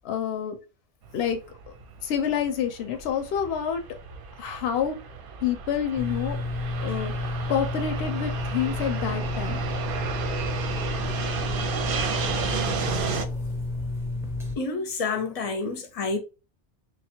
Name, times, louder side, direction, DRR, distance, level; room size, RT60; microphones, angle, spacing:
voice 1, 0.0-0.6 1.1-1.4 2.0-3.8 4.4-4.9 5.4-6.4 6.8-7.1 7.5-9.6, left 8 dB, 70° left, 0.8 m, -27 dB
Fixed-wing aircraft airplane, 1.0-13.2, right 5 dB, 60° right, 0.7 m, -33 dB
sound 1, 6.0-14.5, left 2 dB, 5° right, 0.5 m, -31 dB
voice 2, 14.6-16.2, left 4 dB, 40° left, 0.6 m, -29 dB
3.1 x 2.3 x 4.3 m
omnidirectional pair, 1.2 m